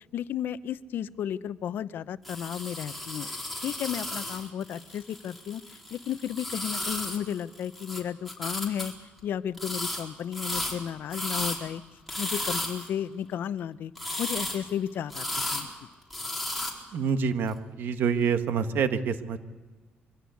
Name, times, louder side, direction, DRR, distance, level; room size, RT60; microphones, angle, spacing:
voice 1, 0.0-3.3 3.6-5.6 5.9-8.9 9.2-11.8 12.2-13.9 14.2-15.7, left 9 dB, 65° left, 15 dB, 0.7 m, -33 dB
sound 1, 2.2-8.0 8.3-8.9 9.6-10.0 10.3-11.6 12.1-12.9 13.9-14.7 15.1-15.7 16.1-16.7, left 1 dB, ahead, 4.3 m, -34 dB
voice 2, 16.9-19.4, right 6 dB, 70° right, 9 dB, 1.5 m, -27 dB
24.0 x 17.0 x 8.3 m, 1.4 s
cardioid pair, 125°, 4 cm